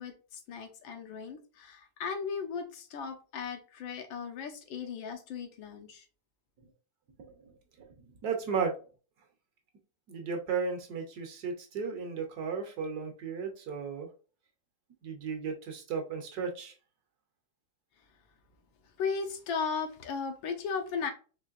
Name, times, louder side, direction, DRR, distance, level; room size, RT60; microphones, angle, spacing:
voice 1, 0.0-6.0 19.0-21.1, left 5 dB, 85° left, 1.5 m, -36 dB
voice 2, 8.2-8.7 10.1-14.1 15.0-16.7, right 5 dB, 65° right, 1.2 m, -34 dB
4.5 x 3.1 x 2.4 m
omnidirectional pair, 2.1 m